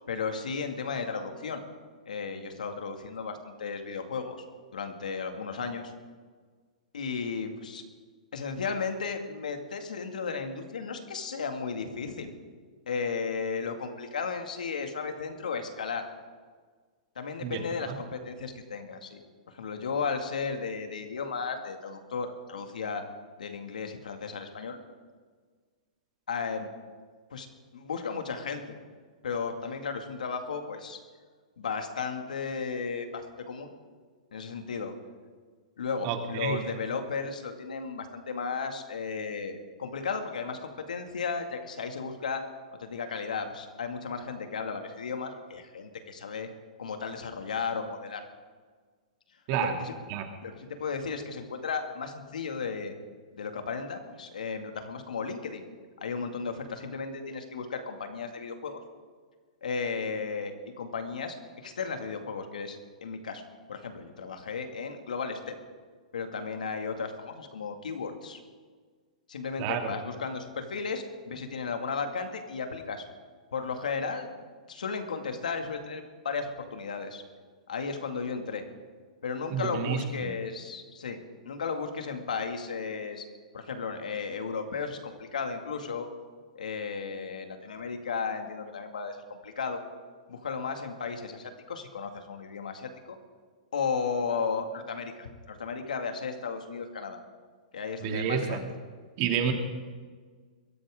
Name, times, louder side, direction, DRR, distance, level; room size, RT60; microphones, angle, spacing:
voice 1, 0.1-1.6 2.1-4.5 4.7-5.9 6.9-7.8 8.3-12.3 12.9-16.1 17.2-19.2 19.5-23.0 23.4-24.8 26.3-26.7 27.3-27.5 27.7-28.6 29.2-31.0 31.6-33.7 34.3-34.9 35.8-42.4 42.8-46.5 46.8-48.2 49.6-49.9 50.4-53.0 53.3-55.6 56.0-58.8 59.6-61.3 61.6-63.4 63.7-65.5 66.1-68.4 69.3-73.0 73.5-74.3 74.7-77.2 77.7-78.6 79.2-81.2 81.5-83.2 83.5-86.1 86.6-89.8 90.3-93.2 93.7-97.2 97.7-98.7, left 5 dB, 85° left, 5 dB, 2.3 m, -34 dB
voice 2, 36.0-36.6 49.5-49.7 50.1-50.2 69.6-69.9 79.5-80.3 98.0-98.6 99.2-99.5, right 8 dB, 45° right, 3 dB, 2.6 m, -29 dB
22.5 x 16.0 x 3.8 m, 1.5 s
hypercardioid pair, 130°, 4 cm